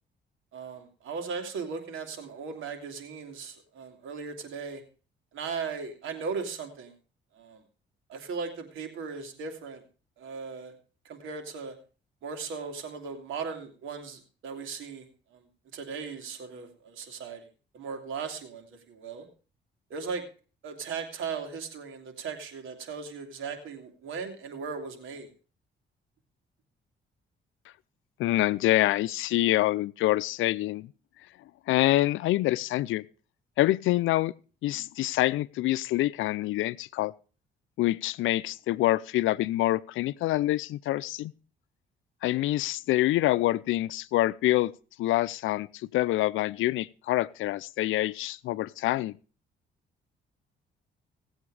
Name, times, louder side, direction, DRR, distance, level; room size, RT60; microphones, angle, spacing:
voice 1, 0.5-4.8 5.3-6.9 7.3-7.6 8.1-9.8 10.2-10.7 11.0-11.7 12.2-15.4 15.7-17.5 17.7-19.3 19.9-20.2 20.6-25.3, right 5 dB, 85° right, 5 dB, 2.8 m, -37 dB
voice 2, 28.2-30.9 31.7-33.0 33.6-34.3 34.6-37.1 37.8-41.3 42.2-44.7 45.0-49.2, left 16 dB, 85° left, 18 dB, 0.6 m, -26 dB
17.5 x 8.0 x 4.9 m, 0.37 s
cardioid pair, 90°, 20 cm